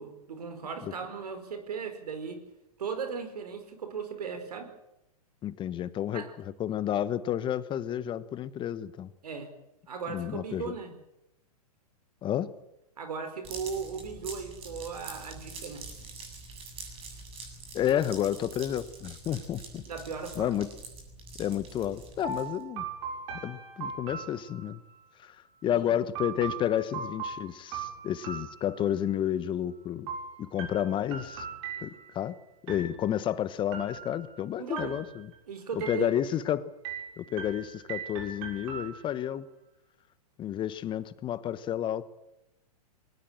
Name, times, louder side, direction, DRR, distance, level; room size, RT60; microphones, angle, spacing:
voice 1, 0.0-2.4 2.8-4.7 6.1-6.3 9.2-9.5 9.9-10.9 13.0-15.9 19.8-20.5 25.6-26.0 34.6-35.0 35.5-36.1, right 5 dB, 75° right, 9 dB, 4.8 m, -37 dB
voice 2, 5.4-9.1 10.1-10.7 12.2-12.5 17.7-19.8 20.4-20.7 21.4-22.8 23.4-24.8 25.2-25.4 25.6-30.1 30.4-31.5 31.8-32.4 32.6-35.3 35.7-36.7 37.2-39.5 40.4-42.0, left 10 dB, 25° left, 15 dB, 1.1 m, -31 dB
sound 1, 13.4-22.6, right 3 dB, 30° right, 7.6 m, -45 dB
sound 2, 22.2-25.0 26.1-29.2 30.1-32.3 32.7-33.3 33.7-34.4 34.8-35.4 35.8-36.5 36.8-39.3, right 6 dB, 50° right, 7.4 m, -40 dB
21.5 x 19.0 x 8.9 m, 0.86 s
hypercardioid pair, 115°, 20 cm